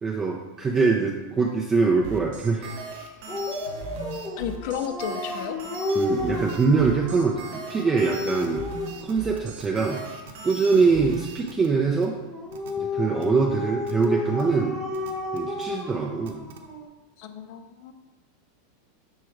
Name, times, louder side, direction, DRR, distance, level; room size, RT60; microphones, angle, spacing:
voice 1, 0.0-2.8 6.0-8.6 9.0-10.0 10.4-12.2 12.8-14.8 15.3-16.5, right 4 dB, 15° right, 0 dB, 0.4 m, -23 dB
sound 1, 2.0-11.4, right 4 dB, 55° right, 0.9 m, -39 dB
Dog, 3.3-9.1 12.3-16.8, left 2 dB, 5° left, 0.9 m, -31 dB
voice 2, 4.4-5.6 17.2-17.9, left 8 dB, 50° left, 8 dB, 0.5 m, -32 dB
sound 2, 8.4-8.5 9.1-9.7 10.0-10.1 10.3-10.9 11.1-11.7 12.0-12.1 12.5-12.7 13.2-13.3 13.9-14.1 14.4-14.5 14.9-15.6 16.3-16.6, right 7 dB, 85° right, 0.7 m, -45 dB
6.3 x 3.7 x 4.5 m, 1.2 s
supercardioid pair, 165°, 0 cm